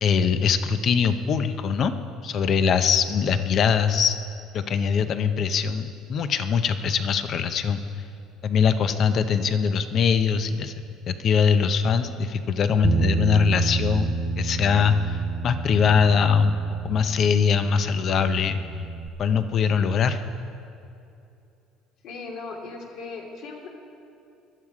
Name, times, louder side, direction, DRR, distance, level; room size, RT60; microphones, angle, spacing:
voice 1, 0.0-1.9 2.2-4.2 4.5-7.8 8.4-10.7 11.1-16.5 16.8-18.6 19.2-20.2, left 6 dB, 35° left, 10 dB, 0.7 m, -22 dB
Bass guitar, 12.8-19.1, right 5 dB, 25° right, 0.5 m, -30 dB
voice 2, 22.0-23.7, left 4 dB, 55° left, 1 dB, 2.5 m, -37 dB
19.5 x 12.5 x 4.9 m, 2.6 s
cardioid pair, 175°, 0 cm